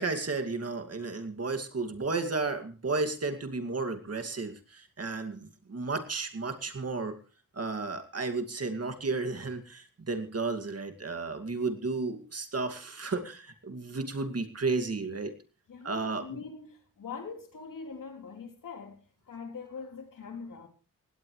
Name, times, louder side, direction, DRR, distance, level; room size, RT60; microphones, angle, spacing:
voice 1, 0.0-7.1 7.5-15.3 15.8-16.4, right 3 dB, 45° right, 2.4 m, -33 dB
voice 2, 15.7-20.7, left 5 dB, 75° left, 3.6 m, -43 dB
19.0 x 17.0 x 3.3 m
cardioid pair, 75°, 33 cm